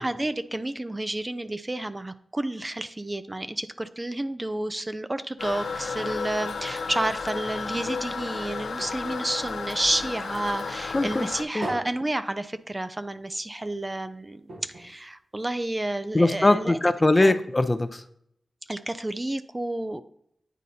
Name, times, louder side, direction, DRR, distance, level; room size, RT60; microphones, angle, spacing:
voice 1, 0.0-16.8 17.2-17.3 18.7-20.0, right 1 dB, 25° right, 12 dB, 0.4 m, -30 dB
Toilet flush, 5.4-11.4, left 4 dB, 80° left, 0.5 m, -33 dB
sound 1, 8.8-10.5 10.9-13.1 13.5-13.6 13.9-14.0 14.4-16.0 16.6-16.7, right 1 dB, 80° right, 1.2 m, -42 dB
voice 2, 10.9-11.3 11.5-11.7 16.1-18.0, left 2 dB, 30° left, 9 dB, 0.5 m, -21 dB
9.1 x 4.0 x 2.7 m, 0.70 s
cardioid pair, 40°, 0 cm